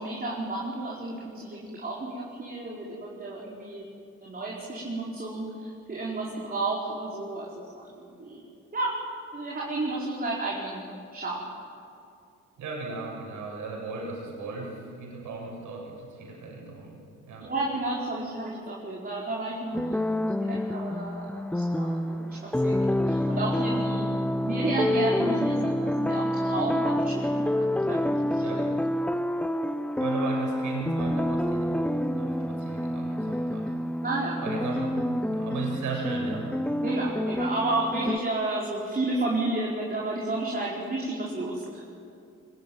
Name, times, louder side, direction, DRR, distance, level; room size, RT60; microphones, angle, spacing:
voice 1, 0.0-3.8 4.2-8.4 8.7-9.1 9.3-10.8 11.1-11.5 17.4-24.1 24.4-28.4 34.0-34.4 36.8-41.8, right 2 dB, 30° right, -4 dB, 5.0 m, -32 dB
voice 2, 12.6-17.0 17.3-17.5 28.4-28.6 30.0-33.7 34.4-36.5, right 4 dB, 75° right, -1 dB, 7.9 m, -36 dB
sound 1, 19.7-38.2, left 1 dB, 5° left, 0.6 m, -28 dB
24.0 x 20.5 x 9.3 m, 2.6 s
cardioid pair, 90°, 30 cm